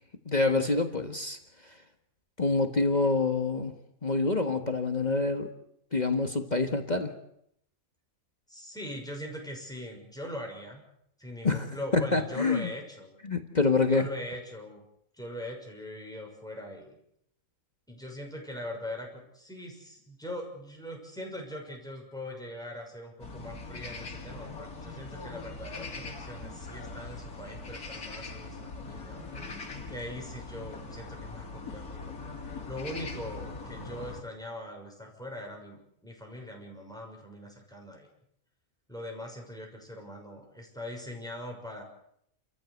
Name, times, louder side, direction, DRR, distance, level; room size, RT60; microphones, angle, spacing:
voice 1, 0.2-1.4 1.6-1.7 2.4-3.7 4.0-5.5 5.9-7.1 11.4-11.7 11.9-12.7 13.2-14.1, left 3 dB, 30° left, 6 dB, 1.6 m, -26 dB
voice 2, 8.5-10.8 11.2-13.2 13.9-14.8 15.1-17.0 17.9-38.1 38.9-41.8, left 1 dB, ahead, 1 dB, 6.1 m, -41 dB
sound 1, 23.2-34.2, left 3 dB, 85° left, 3.0 m, -41 dB
30.0 x 14.5 x 8.2 m, 0.74 s
omnidirectional pair, 1.6 m